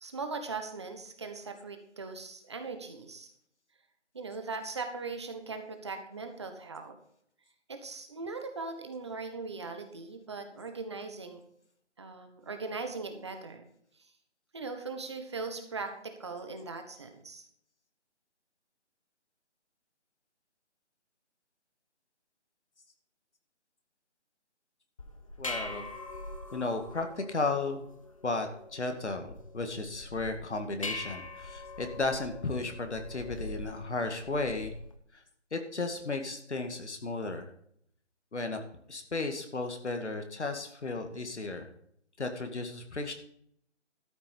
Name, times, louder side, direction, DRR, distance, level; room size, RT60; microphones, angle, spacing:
voice 1, 0.0-3.3 4.1-7.0 7.7-11.4 12.0-13.7 14.5-17.4, right 4 dB, 25° right, 6 dB, 1.3 m, -39 dB
sound 1, 25.0-35.0, left 2 dB, 30° left, 1.0 m, -43 dB
voice 2, 25.4-25.9 26.5-27.9 28.2-34.7 35.1-35.2 35.5-37.5 38.3-38.6 38.9-41.7 42.2-43.1, left 3 dB, 70° left, 5 dB, 2.3 m, -34 dB
13.0 x 7.5 x 5.5 m, 0.68 s
figure-of-eight pair, 170°, 36 cm